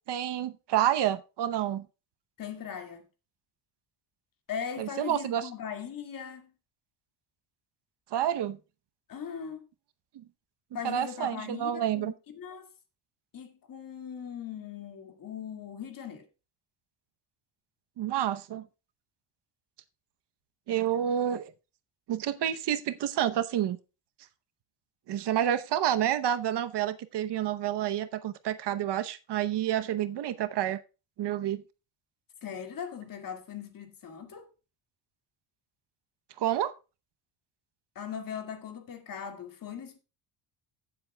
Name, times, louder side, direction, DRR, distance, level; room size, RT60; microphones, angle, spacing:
voice 1, 0.1-1.9 4.8-5.5 8.1-8.6 10.1-10.2 10.8-12.1 18.0-18.7 20.7-21.5 22.1-23.8 25.1-30.8 31.2-31.6 36.4-36.7, right 11 dB, 55° right, 0.9 m, -29 dB
voice 2, 2.4-3.0 4.5-6.5 9.1-9.7 10.7-12.7 13.3-16.3 20.7-21.1 32.4-34.5 38.0-40.0, left 7 dB, 40° left, 2.1 m, -39 dB
16.0 x 7.6 x 2.2 m
cardioid pair, 130°, 50 cm